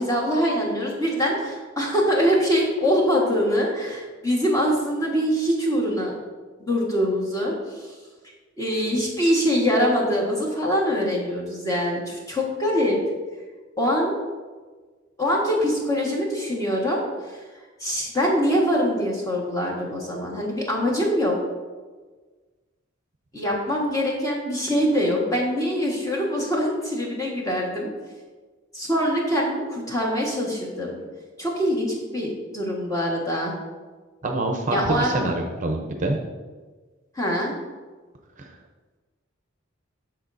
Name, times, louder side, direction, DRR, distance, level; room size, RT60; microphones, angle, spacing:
voice 1, 0.0-6.1 6.6-7.9 8.6-13.0 13.8-14.1 15.2-17.0 17.3-17.4 17.8-21.4 23.3-27.9 28.7-31.0 31.4-33.5 34.7-35.2 37.1-37.5, equal, 15° left, -3 dB, 1.5 m, -23 dB
voice 2, 34.2-36.2 38.4-38.6, right 2 dB, 40° right, 3 dB, 0.7 m, -26 dB
13.0 x 4.5 x 2.6 m, 1.4 s
head